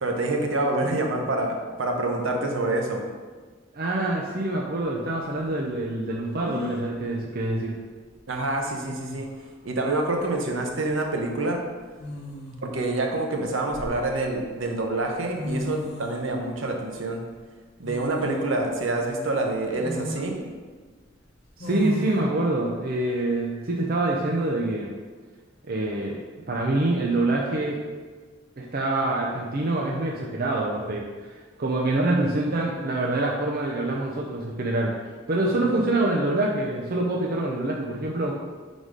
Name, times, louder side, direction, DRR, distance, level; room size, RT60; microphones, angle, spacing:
voice 1, 0.0-3.0 8.3-9.3 9.6-11.6 12.6-17.2 17.8-20.4 35.6-35.7, right 2 dB, 70° right, 2 dB, 0.9 m, -27 dB
voice 2, 3.7-7.8 21.6-24.9 25.7-26.2 26.5-27.8 28.6-31.0 31.6-34.9 35.3-38.3, right 2 dB, 50° right, -2 dB, 0.6 m, -25 dB
sound 1, 6.4-6.9 8.4-8.5 8.9-9.4 10.7-10.9 12.0-12.8 13.4-14.4 15.1-15.2 15.4-16.2 17.8-18.4 19.0-19.1 19.8-20.3 21.6-22.2, left 1 dB, 55° left, 0.9 m, -35 dB
4.7 x 4.1 x 5.1 m, 1.4 s
head